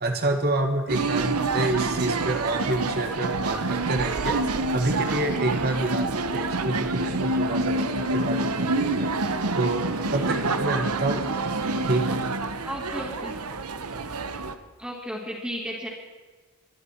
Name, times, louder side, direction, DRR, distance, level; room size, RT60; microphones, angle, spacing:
voice 1, 0.0-4.4 4.7-9.1 9.5-11.2 11.9-12.2 13.9-14.0, right 2 dB, 45° right, 5 dB, 1.7 m, -28 dB
sound 1, 0.9-14.5, right 3 dB, 85° right, 1.1 m, -27 dB
voice 2, 12.6-13.3 14.8-15.9, equal, 5° right, -7 dB, 3.0 m, -34 dB
24.5 x 12.5 x 4.6 m, 1.4 s
head